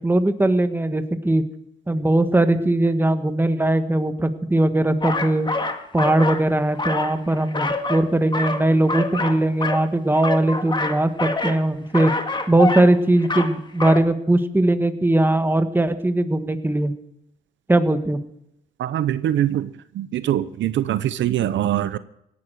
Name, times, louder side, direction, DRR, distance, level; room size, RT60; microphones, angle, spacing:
voice 1, 0.0-1.4 1.9-5.5 5.9-12.1 12.5-16.9 17.7-18.2, right 1 dB, 10° right, 9 dB, 1.5 m, -20 dB
sound 1, 5.0-6.4 6.7-8.1 8.3-9.9 10.1-11.6 11.9-12.9 13.2-13.5 13.8-14.0, left 2 dB, 25° left, 1.9 m, -26 dB
voice 2, 18.8-19.7 19.9-22.0, right 11 dB, 70° right, 14 dB, 0.8 m, -23 dB
17.5 x 11.0 x 6.4 m, 0.77 s
cardioid pair, 90°, 20 cm